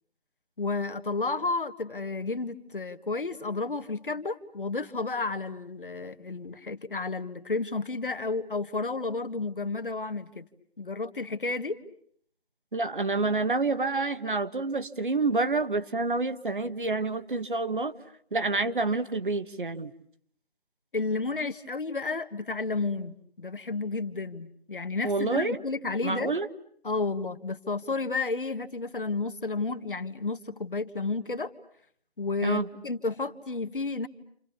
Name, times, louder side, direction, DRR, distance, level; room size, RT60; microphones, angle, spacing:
voice 1, 0.6-10.5 10.8-11.8 20.9-26.3 26.8-31.5 32.2-34.1, left 3 dB, 60° left, 10 dB, 1.6 m, -31 dB
voice 2, 12.7-17.9 18.3-19.9 25.0-25.6 26.0-26.5 32.4-32.7, right 3 dB, 55° right, 10 dB, 1.3 m, -28 dB
29.0 x 28.5 x 7.0 m, 0.63 s
figure-of-eight pair, 165°, 31 cm